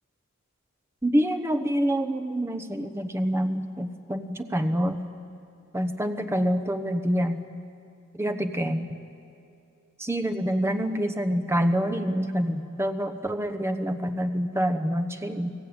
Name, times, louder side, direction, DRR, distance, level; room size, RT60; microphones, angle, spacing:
voice 1, 1.0-5.0 5.7-7.4 8.1-9.0 10.0-15.5, equal, 10° right, 7 dB, 1.0 m, -26 dB
29.5 x 17.5 x 8.9 m, 2.7 s
head